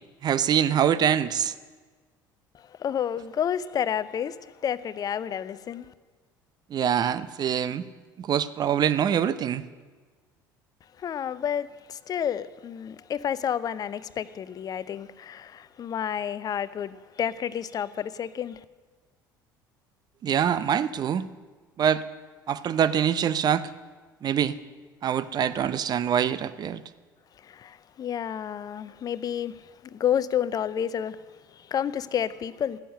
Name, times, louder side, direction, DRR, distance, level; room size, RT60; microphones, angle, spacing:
voice 1, 0.2-1.5 6.7-7.9 8.2-9.6 20.2-21.3 21.8-22.0 22.5-23.7 24.2-24.6 25.0-26.8, right 9 dB, 35° right, 0.7 m, -24 dB
voice 2, 2.5-5.9 11.0-18.6 27.4-31.2 31.5-32.8, left 9 dB, 35° left, 0.6 m, -30 dB
14.5 x 10.0 x 6.5 m
figure-of-eight pair, 60°, 11 cm